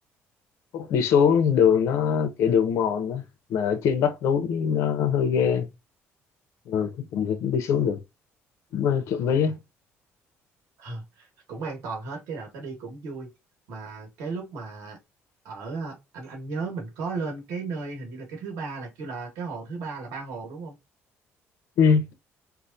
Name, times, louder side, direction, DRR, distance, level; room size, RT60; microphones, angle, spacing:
voice 1, 0.7-3.2 3.5-5.7 6.7-8.0 8.7-9.6 21.8-22.1, left 7 dB, 70° left, 0.8 m, -22 dB
voice 2, 10.8-13.3 13.7-15.0 15.4-20.8, right 4 dB, 85° right, 1.6 m, -35 dB
4.7 x 2.1 x 2.6 m
cardioid pair, 135°, 5 cm